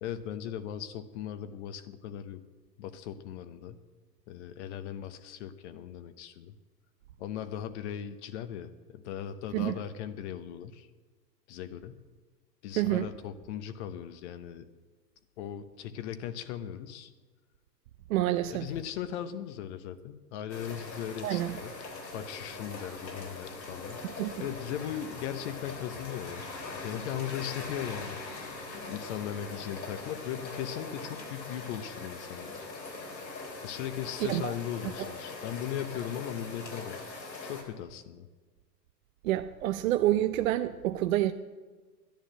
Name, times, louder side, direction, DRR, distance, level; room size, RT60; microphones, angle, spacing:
voice 1, 0.0-2.4 2.8-3.7 4.3-6.6 7.2-10.9 11.5-12.0 12.6-14.6 15.4-17.1 18.5-21.7 22.1-24.0 24.4-32.6 33.6-37.0 37.4-38.3, left 10 dB, 45° left, 0.9 m, -38 dB
voice 2, 12.8-13.1 18.1-18.7 21.2-21.6 24.0-24.3 34.2-34.5 39.2-41.3, right 14 dB, 55° right, 0.6 m, -28 dB
sound 1, 20.5-37.6, left 3 dB, 90° left, 3.5 m, -42 dB
11.0 x 10.5 x 7.5 m
hypercardioid pair, 120°, 50 cm